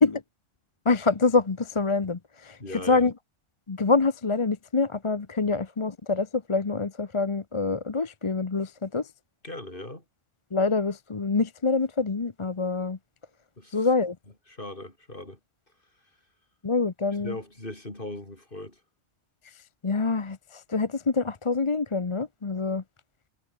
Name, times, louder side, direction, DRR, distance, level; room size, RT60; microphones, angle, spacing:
voice 1, 0.9-2.6 2.9-3.1 3.7-9.0 10.5-13.0 13.7-14.2 16.6-17.4 19.8-22.8, left 4 dB, 30° left, 0.8 m, -25 dB
voice 2, 2.6-3.1 5.4-5.6 9.4-10.0 13.6-13.9 14.5-15.4 17.2-18.8, left 1 dB, 45° left, 5.8 m, -39 dB
omnidirectional pair, 1.3 m